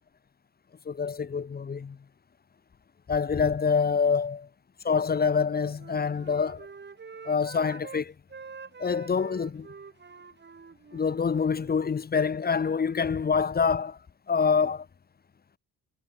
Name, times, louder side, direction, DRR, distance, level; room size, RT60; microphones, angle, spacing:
voice 1, 0.9-2.0 3.1-4.5 4.8-6.7 7.3-8.1 8.8-9.7 10.9-14.0 14.3-14.9, left 5 dB, 30° left, 1.0 m, -26 dB
Wind instrument woodwind instrument, 5.3-8.0 8.3-11.9, right 5 dB, 35° right, 6.8 m, -46 dB
cardioid pair, 90°, 30 cm